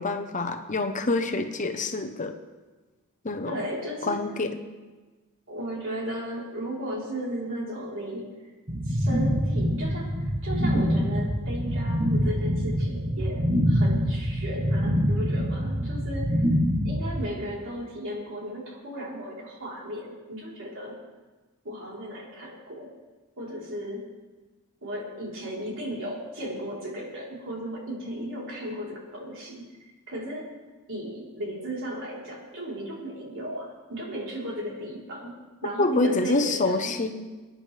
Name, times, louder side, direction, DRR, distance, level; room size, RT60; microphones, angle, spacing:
voice 1, 0.0-2.3 3.2-3.5 4.0-4.6 35.8-37.2, left 2 dB, 35° left, 6 dB, 0.9 m, -26 dB
voice 2, 3.5-4.2 5.5-8.3 8.9-16.4 16.8-20.9 21.6-22.9 23.4-24.1 24.8-29.6 30.1-30.5 30.9-36.9, equal, 60° right, -4 dB, 4.0 m, -35 dB
sound 1, 8.7-17.2, equal, 25° right, 1.1 m, -25 dB
24.5 x 10.0 x 3.4 m, 1.3 s
head